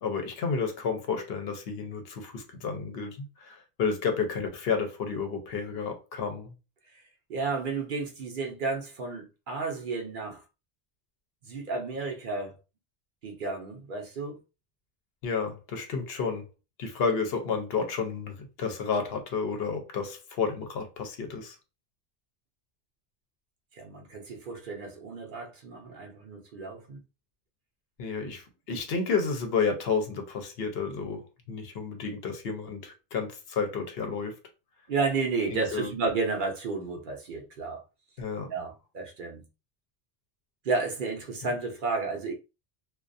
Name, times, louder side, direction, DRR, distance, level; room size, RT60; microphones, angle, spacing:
voice 1, 0.0-6.5 15.2-16.5 16.8-21.6 28.0-34.4 35.5-35.9 38.2-38.5, left 5 dB, 70° left, 0.8 m, -31 dB
voice 2, 7.3-10.4 11.5-12.5 13.2-14.4 23.7-27.0 34.9-37.8 38.5-39.4 40.6-42.3, right 4 dB, 60° right, 0.7 m, -32 dB
2.3 x 2.3 x 2.5 m
omnidirectional pair, 1.1 m